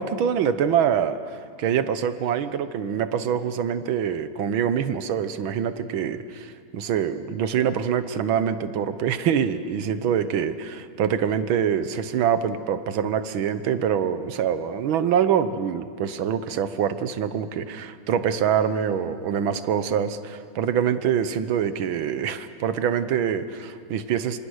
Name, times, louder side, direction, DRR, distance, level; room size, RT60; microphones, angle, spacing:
voice 1, 0.0-24.4, right 8 dB, 75° right, 12 dB, 1.8 m, -25 dB
26.5 x 26.0 x 6.4 m, 2.3 s
omnidirectional pair, 2.3 m